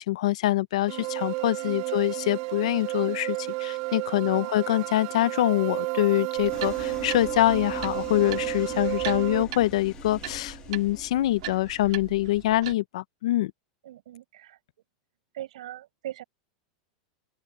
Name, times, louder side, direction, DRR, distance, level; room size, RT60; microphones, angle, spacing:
voice 1, 0.0-13.5, left 15 dB, 70° left, 0.7 m, -25 dB
sound 1, 0.9-9.4, right 23 dB, 40° right, 1.8 m, -32 dB
voice 2, 4.1-4.5 13.8-14.6 15.3-16.2, right 13 dB, 90° right, 6.4 m, -41 dB
sound 2, 6.4-12.7, right 20 dB, 60° right, 1.6 m, -41 dB
sound 3, 6.5-11.9, left 10 dB, 25° left, 1.3 m, -43 dB
open air
supercardioid pair, 175°, 3 cm